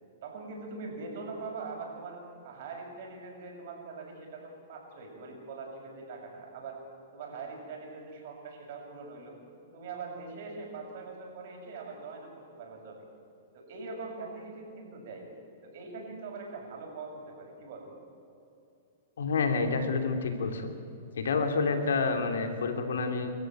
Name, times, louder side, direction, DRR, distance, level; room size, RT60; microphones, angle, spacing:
voice 1, 0.2-6.8 7.1-9.4 9.7-13.1 13.5-15.3 15.6-17.9, right 4 dB, 60° right, 1 dB, 7.2 m, -42 dB
voice 2, 19.2-20.7 21.1-23.3, left 4 dB, 90° left, 6 dB, 3.0 m, -28 dB
26.5 x 14.0 x 9.2 m, 2.7 s
hypercardioid pair, 145°, 0 cm